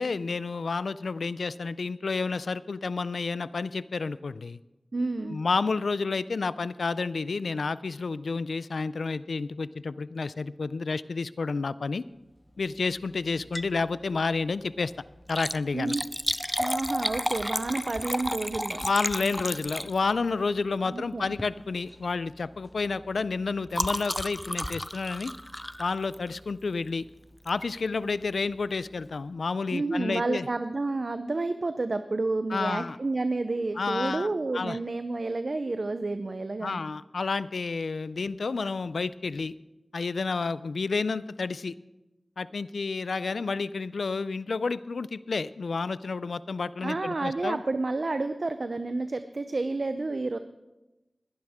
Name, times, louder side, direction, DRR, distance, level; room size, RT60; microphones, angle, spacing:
voice 1, 0.0-4.6 5.2-12.0 12.6-14.9 15.3-16.0 18.8-25.3 25.8-27.1 27.5-30.5 32.5-33.0 33.8-34.3 34.5-34.8 36.6-39.5 39.9-41.7 42.4-47.6, left 4 dB, 90° left, 17 dB, 0.4 m, -30 dB
voice 2, 4.9-5.4 15.7-16.0 16.6-18.9 20.8-21.3 29.7-36.8 46.8-50.4, right 3 dB, 60° right, 10 dB, 0.6 m, -30 dB
Liquid, 13.4-13.8 14.2-14.3 15.2-20.3 21.3-21.6 21.9-22.2 22.4-26.5 27.5-27.7 28.3-28.4 28.5-28.6, equal, 5° left, 0.4 m, -33 dB
20.5 x 11.5 x 3.6 m, 1.0 s
wide cardioid pair, 45°, 0 cm